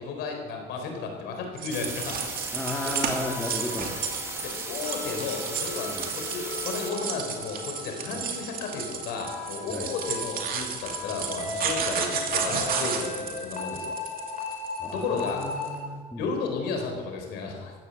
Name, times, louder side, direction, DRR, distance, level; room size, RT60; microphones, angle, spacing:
voice 1, 0.0-2.2 2.8-2.9 4.4-14.0 14.9-15.4 16.2-17.7, left 4 dB, 90° left, 3 dB, 4.3 m, -33 dB
sound 1, 1.6-15.7, right 6 dB, 60° right, 2.5 m, -33 dB
sound 2, 1.7-6.9, right 2 dB, 15° right, 2.4 m, -37 dB
voice 2, 2.5-3.9 5.8-6.1 8.1-8.3 9.7-9.9 14.8-16.2, left 1 dB, 10° left, -1 dB, 2.2 m, -34 dB
sound 3, 2.7-15.8, left 4 dB, 50° left, 4.4 m, -38 dB
15.0 x 12.0 x 7.3 m, 1.5 s
cardioid pair, 110°, 17 cm